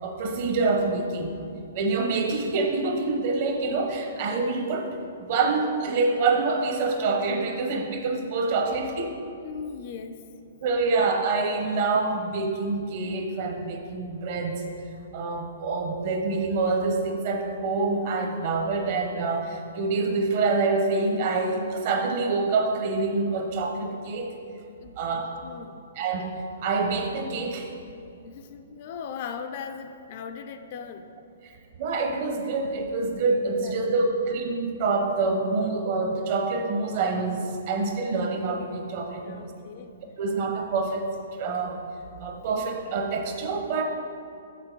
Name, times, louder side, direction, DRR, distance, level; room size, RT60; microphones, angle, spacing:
voice 1, 0.0-1.3 1.7-5.0 5.3-9.1 10.6-14.6 15.1-24.3 25.0-25.3 26.0-26.3 26.6-27.7 31.8-39.5 40.2-41.0 41.4-41.8 42.2-43.8, right 3 dB, 40° right, 3 dB, 0.8 m, -26 dB
voice 2, 9.4-10.2 24.8-24.9 25.4-25.8 28.2-31.1 33.5-33.8 39.2-39.9, left 6 dB, 40° left, 7 dB, 0.4 m, -38 dB
6.3 x 6.0 x 4.5 m, 2.5 s
hypercardioid pair, 165°, 0 cm